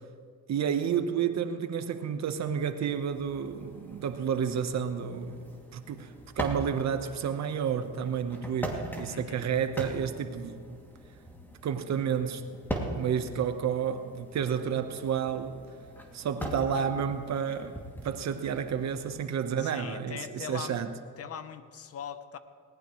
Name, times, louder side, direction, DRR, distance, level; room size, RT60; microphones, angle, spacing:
voice 1, 0.5-5.4 5.7-10.8 11.6-12.5 12.9-15.6 16.1-17.8 18.0-20.9, right 7 dB, 55° right, 1.3 m, -30 dB
sound 1, 2.7-19.2, right 1 dB, 5° left, 2.7 m, -41 dB
voice 2, 9.1-9.5 19.6-20.8 21.2-22.4, left 8 dB, 45° left, 1.1 m, -41 dB
19.5 x 19.5 x 3.3 m
cardioid pair, 100°, 34 cm